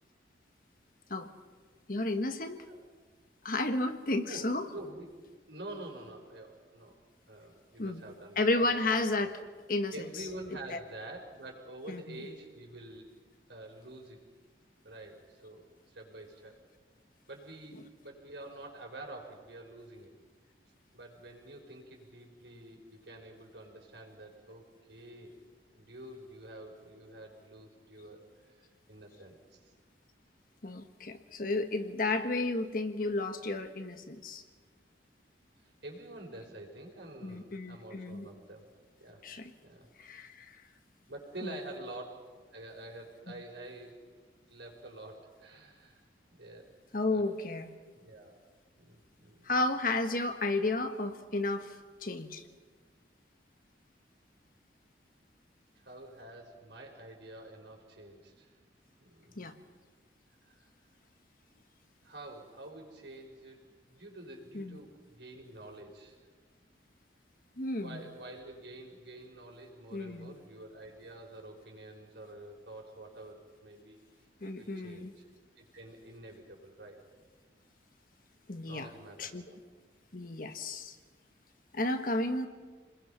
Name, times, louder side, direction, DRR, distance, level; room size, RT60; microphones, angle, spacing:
voice 1, 1.9-2.6 3.4-4.7 7.8-8.0 8.4-9.4 9.7-9.9 10.7-10.8 11.9-12.2 30.6-34.4 37.2-38.3 39.2-39.5 40.0-40.6 41.4-41.5 46.9-47.7 49.4-52.5 59.4-59.6 64.5-64.8 67.6-68.0 69.9-70.3 74.4-75.1 78.5-78.9 79.2-79.4 80.1-81.0 81.7-82.5, left 2 dB, 50° left, 7 dB, 1.4 m, -32 dB
voice 2, 4.7-5.1 5.5-6.9 7.3-8.9 9.9-13.1 13.5-14.2 14.8-16.6 17.3-20.1 20.9-24.6 24.9-25.3 25.7-29.7 35.6-38.7 39.0-39.2 39.6-39.9 41.1-42.1 42.5-44.2 44.5-46.0 46.3-46.6 47.1-47.2 47.9-48.3 48.8-49.5 55.8-58.5 59.0-59.4 60.4-60.6 62.0-63.6 63.9-66.2 67.8-74.0 74.4-75.3 75.6-77.0 78.7-79.6, right 1 dB, 70° right, 1 dB, 5.2 m, -48 dB
29.0 x 21.0 x 5.8 m, 1.4 s
head